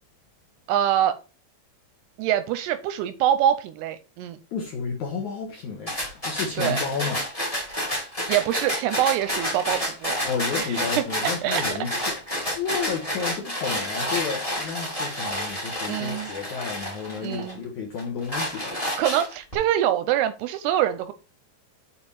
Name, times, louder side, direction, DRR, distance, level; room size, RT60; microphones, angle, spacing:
voice 1, 0.7-1.2 2.2-4.4 6.6-6.8 8.3-10.2 10.5-11.6 15.9-16.3 17.2-17.6 19.0-21.1, right 11 dB, 85° right, 2.5 m, -25 dB
voice 2, 4.5-7.2 10.2-12.1 12.5-18.8, left 5 dB, 70° left, 1.8 m, -31 dB
sound 1, 5.9-17.5 18.0-19.5, equal, 15° left, 1.2 m, -29 dB
7.1 x 5.0 x 4.1 m
omnidirectional pair, 5.0 m